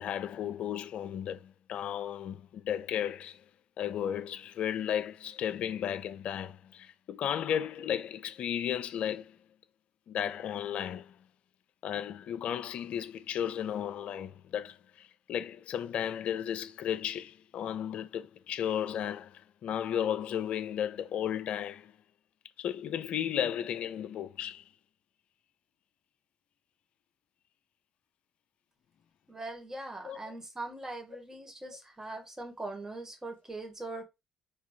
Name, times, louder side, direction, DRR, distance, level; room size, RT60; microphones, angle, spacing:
voice 1, 0.0-3.5 3.8-9.4 10.1-11.2 11.8-21.9 22.6-24.7 30.0-30.4 31.6-31.8, left 9 dB, 60° left, 0.4 m, -34 dB
voice 2, 29.3-34.0, right 2 dB, 20° right, 1.7 m, -41 dB
4.7 x 2.3 x 4.0 m
figure-of-eight pair, 45°, 2 cm